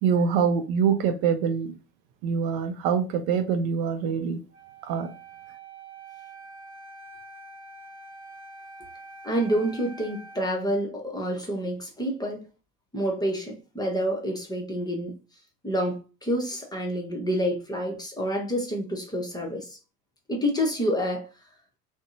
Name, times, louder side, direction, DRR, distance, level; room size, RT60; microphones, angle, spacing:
voice 1, 0.0-1.7 2.2-4.4 4.8-5.1, right 6 dB, 55° right, 0.5 m, -24 dB
Wind instrument woodwind instrument, 4.5-10.5, right 2 dB, 35° right, 1.1 m, -45 dB
voice 2, 9.2-12.4 12.9-15.1 15.6-19.8 20.3-21.3, equal, 10° left, 0.7 m, -28 dB
2.6 x 2.1 x 2.5 m
hypercardioid pair, 80°, 46 cm